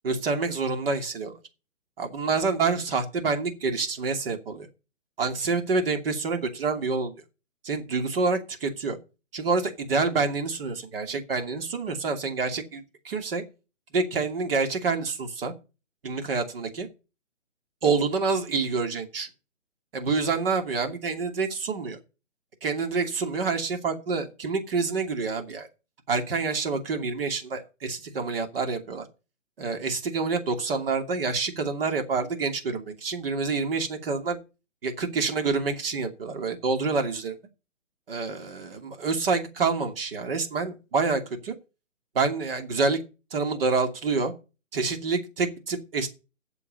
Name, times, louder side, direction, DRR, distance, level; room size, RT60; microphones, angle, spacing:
voice 1, 0.0-1.3 2.0-4.7 5.2-7.1 7.6-9.0 9.3-13.4 13.9-15.5 16.0-16.9 17.8-19.3 19.9-22.0 22.6-25.7 26.1-29.1 29.6-34.4 34.8-37.4 38.1-41.5 42.1-43.0 43.3-44.3 44.7-46.1, right 4 dB, 50° right, 5 dB, 2.7 m, -27 dB
8.2 x 7.1 x 8.1 m, 0.32 s
hypercardioid pair, 155°, 38 cm